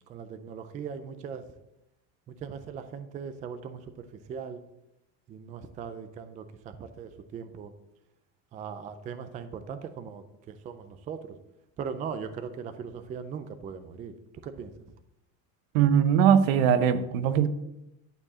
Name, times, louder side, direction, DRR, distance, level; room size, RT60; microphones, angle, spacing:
voice 1, 0.0-1.4 2.3-4.6 5.3-7.7 8.5-11.4 11.8-14.1 14.4-14.9, right 6 dB, 20° right, 10 dB, 0.3 m, -39 dB
voice 2, 15.7-17.5, right 8 dB, 70° right, 12 dB, 1.0 m, -21 dB
11.5 x 4.6 x 7.2 m, 0.89 s
cardioid pair, 175°, 41 cm